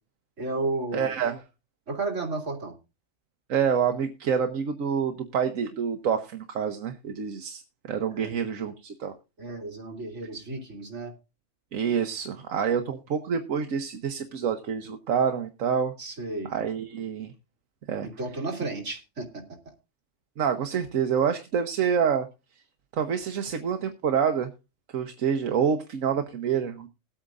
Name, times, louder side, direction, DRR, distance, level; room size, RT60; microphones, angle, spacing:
voice 1, 0.4-1.1 1.9-2.7 8.1-8.3 9.4-11.1 16.0-16.5 18.0-19.3, right 3 dB, 65° right, 0 dB, 3.0 m, -32 dB
voice 2, 0.9-1.4 3.5-7.6 7.9-9.1 11.7-15.9 16.5-17.3 17.9-18.1 20.4-22.3 22.9-24.5 24.9-26.9, right 7 dB, 80° right, 7 dB, 1.3 m, -27 dB
21.0 x 8.7 x 2.5 m, 0.27 s
omnidirectional pair, 1.4 m